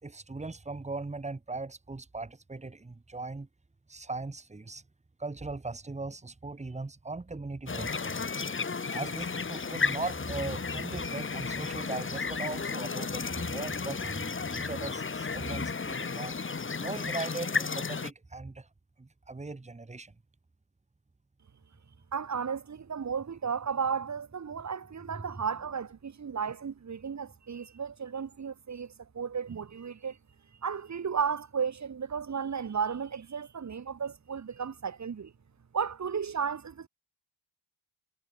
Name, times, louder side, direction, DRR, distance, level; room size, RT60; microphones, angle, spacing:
voice 1, 0.0-3.5 3.9-4.8 5.2-8.4 8.9-16.3 16.8-18.7 19.0-20.1 25.1-25.2, right 3 dB, 15° right, 5.1 m, -39 dB
sound 1, 7.7-18.1, left 4 dB, 25° left, 6.3 m, -33 dB
voice 2, 22.1-30.2 30.6-35.3 35.7-36.9, right 6 dB, 35° right, 5.3 m, -34 dB
cardioid pair, 160°, 48 cm